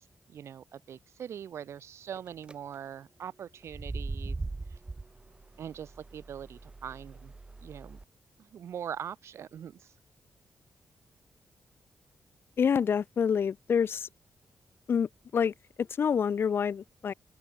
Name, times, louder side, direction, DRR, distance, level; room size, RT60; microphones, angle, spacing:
voice 1, 0.0-4.4 4.7-4.8 5.6-7.3 7.6-8.0 8.4-9.9, right 9 dB, 75° right, 2.4 m, -42 dB
sound 1, 2.2-2.5 3.6-8.0, right 3 dB, 20° right, 0.5 m, -40 dB
voice 2, 12.6-14.1 14.9-17.1, left 7 dB, 55° left, 0.6 m, -27 dB
open air
cardioid pair, 90°, 5 cm